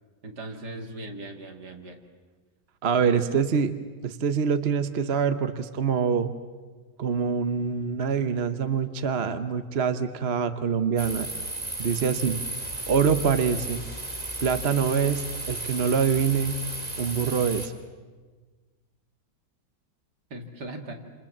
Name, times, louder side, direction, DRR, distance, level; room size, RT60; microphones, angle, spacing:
voice 1, 0.2-2.0 2.9-3.4 20.3-20.9, right 1 dB, 70° right, 3 dB, 3.0 m, -38 dB
voice 2, 2.8-3.7 4.0-6.3 7.0-11.3 11.8-12.4 12.9-13.8 14.4-16.5 17.0-17.7, right 6 dB, 40° right, 10 dB, 1.1 m, -25 dB
sound 1, 11.0-17.7, right 2 dB, 20° right, 2.5 m, -34 dB
28.5 x 28.0 x 7.4 m, 1.4 s
omnidirectional pair, 1.9 m